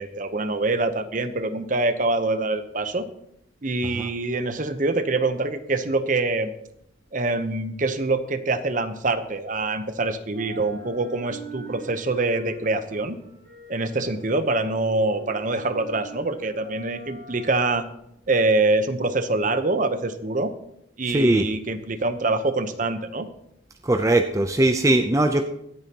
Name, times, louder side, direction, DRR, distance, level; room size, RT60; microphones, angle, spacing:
voice 1, 0.0-3.0 3.6-6.5 7.1-13.2 13.7-17.8 18.3-20.5 21.0-23.3, right 2 dB, 45° right, 10 dB, 0.9 m, -25 dB
sound 1, 7.1-9.9 10.2-18.4, right 1 dB, 60° right, 3.7 m, -44 dB
voice 2, 21.1-21.5 23.8-25.4, right 1 dB, 15° right, 5 dB, 0.6 m, -20 dB
24.5 x 8.8 x 2.9 m, 0.79 s
head